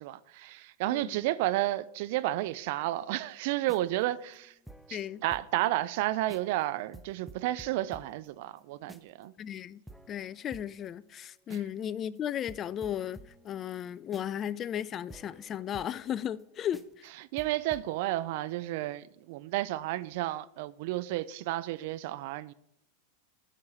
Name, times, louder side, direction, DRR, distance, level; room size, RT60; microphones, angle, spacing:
voice 1, 0.0-4.5 4.9-9.3 17.3-22.5, right 16 dB, 60° right, 0.5 m, -32 dB
sound 1, 3.5-5.7 6.0-6.1 6.3-6.6 6.9-9.2 9.5-9.6 9.9-11.8 12.2-12.3 12.5-16.4 16.7-17.1 17.4-17.9, right 1 dB, ahead, 0.7 m, -52 dB
voice 2, 4.9-5.2 9.4-9.8 10.1-17.0, left 10 dB, 35° left, 0.4 m, -35 dB
12.5 x 4.8 x 5.5 m
hypercardioid pair, 100°, 0 cm